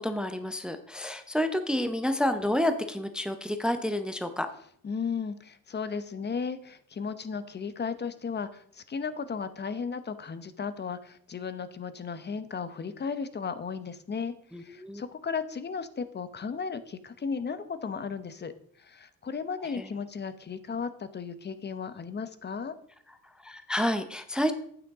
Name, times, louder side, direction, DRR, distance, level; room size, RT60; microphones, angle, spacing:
voice 1, 0.0-4.5 14.5-15.0 19.8-19.9 23.4-24.5, left 1 dB, ahead, 9 dB, 0.7 m, -29 dB
voice 2, 4.8-18.5 18.8-22.8, left 5 dB, 30° left, 12 dB, 0.9 m, -35 dB
8.9 x 8.9 x 3.6 m, 0.64 s
cardioid pair, 95°, 37 cm